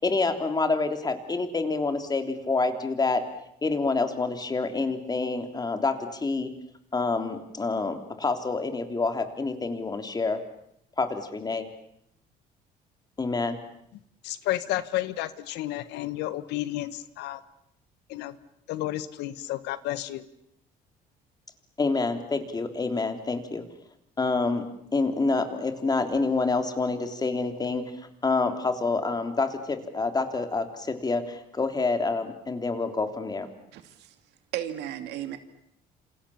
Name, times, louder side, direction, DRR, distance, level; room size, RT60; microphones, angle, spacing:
voice 1, 0.0-3.2 3.6-6.5 6.9-10.4 11.0-11.7 13.2-13.6 21.8-23.6 24.2-24.6 24.9-27.8 28.2-33.5, left 3 dB, 25° left, 7 dB, 3.4 m, -27 dB
voice 2, 14.2-17.4 18.1-18.4 18.7-20.2, left 15 dB, 90° left, 14 dB, 1.5 m, -31 dB
voice 3, 33.7-34.2 34.5-35.4, right 11 dB, 85° right, 9 dB, 2.6 m, -34 dB
28.0 x 27.5 x 7.3 m, 0.74 s
cardioid pair, 110°, 17 cm